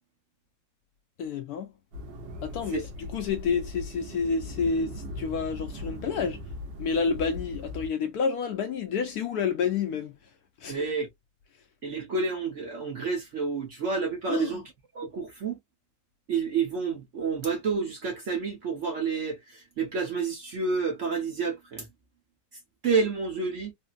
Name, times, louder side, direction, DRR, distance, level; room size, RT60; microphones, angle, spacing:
voice 1, 1.2-1.7 2.4-6.4 6.8-10.1 10.6-10.9 14.3-14.6, left 5 dB, 70° left, 0.9 m, -29 dB
sound 1, 1.9-7.9, left 1 dB, 80° right, 1.6 m, -39 dB
voice 2, 10.7-11.1 11.8-14.6 14.9-15.6 16.3-21.9 22.8-23.7, right 5 dB, 55° right, 0.9 m, -29 dB
4.0 x 2.0 x 2.3 m
omnidirectional pair, 2.0 m